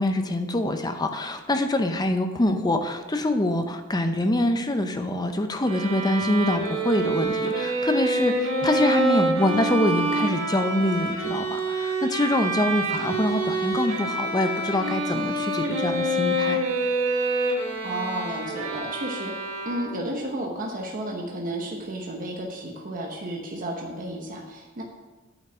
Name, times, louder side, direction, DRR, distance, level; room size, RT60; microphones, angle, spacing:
voice 1, 0.0-16.6, left 1 dB, 20° left, 7 dB, 0.7 m, -25 dB
Bowed string instrument, 5.7-20.2, right 2 dB, 70° right, 1.7 m, -27 dB
voice 2, 17.8-19.3 19.6-24.8, right 1 dB, 40° right, 0 dB, 1.0 m, -32 dB
9.2 x 5.8 x 6.2 m, 1.2 s
head